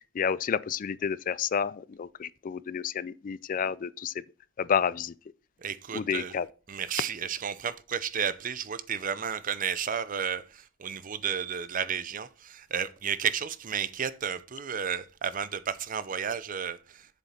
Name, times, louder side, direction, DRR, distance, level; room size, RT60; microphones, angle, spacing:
voice 1, 0.0-4.1 4.6-5.1 5.9-6.5, left 7 dB, 40° left, 0.3 m, -30 dB
voice 2, 5.6-6.3 6.7-17.1, right 7 dB, 40° right, 0.6 m, -32 dB
7.6 x 7.2 x 4.3 m
head